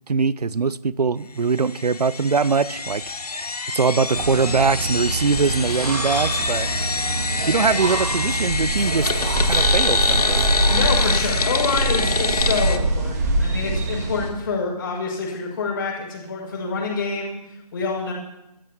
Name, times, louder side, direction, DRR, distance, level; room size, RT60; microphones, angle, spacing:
voice 1, 0.0-3.0 3.4-6.7 7.5-9.1 9.4-10.5, right 5 dB, 70° right, 0.6 m, -22 dB
sound 1, 1.6-12.8, left 4 dB, 65° left, 1.2 m, -25 dB
sound 2, 4.1-14.3, right 2 dB, 25° right, 1.7 m, -24 dB
sound 3, 5.6-6.8 7.6-8.3 8.7-9.6 10.0-11.2 11.5-11.6, left 3 dB, 10° left, 6.6 m, -41 dB
voice 2, 10.7-18.1, left 4 dB, 30° left, 6.6 m, -27 dB
29.0 x 14.0 x 3.1 m
figure-of-eight pair, 155°, 21 cm